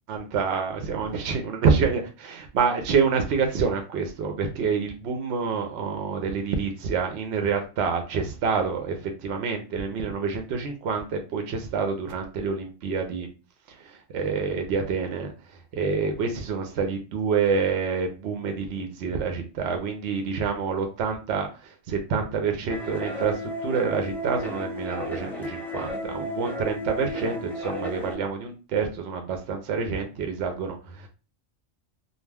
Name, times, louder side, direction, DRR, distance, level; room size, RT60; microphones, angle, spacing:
voice 1, 0.1-13.3 13.7-31.1, right 5 dB, 65° right, 4 dB, 0.7 m, -27 dB
sound 1, 22.7-28.1, left 1 dB, ahead, 0.5 m, -33 dB
2.4 x 2.2 x 3.2 m, 0.32 s
omnidirectional pair, 1.4 m